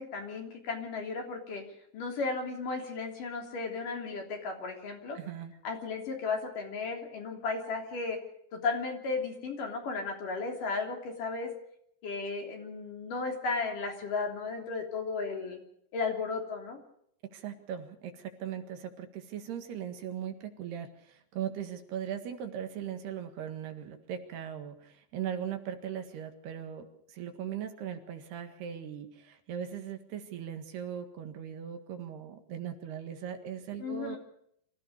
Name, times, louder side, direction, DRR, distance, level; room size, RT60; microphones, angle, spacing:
voice 1, 0.0-1.6 1.9-5.2 5.6-8.2 8.5-11.5 12.0-15.6 15.9-16.8 33.8-34.2, left 4 dB, 50° left, 2 dB, 4.7 m, -34 dB
voice 2, 5.2-5.5 17.3-34.2, right 9 dB, 70° right, 6 dB, 3.7 m, -39 dB
26.0 x 15.5 x 6.7 m, 0.71 s
omnidirectional pair, 5.0 m